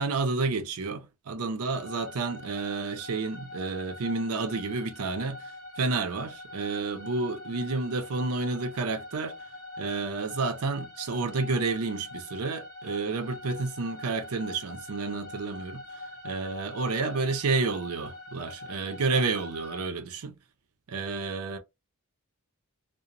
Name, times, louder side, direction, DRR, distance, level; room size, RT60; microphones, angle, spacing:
voice 1, 0.0-5.5 5.8-9.4 9.8-15.8 16.2-20.3 20.9-21.6, right 3 dB, 85° right, 0.5 m, -30 dB
sound 1, 1.7-19.9, left 2 dB, 40° left, 0.8 m, -43 dB
2.5 x 2.1 x 2.9 m
head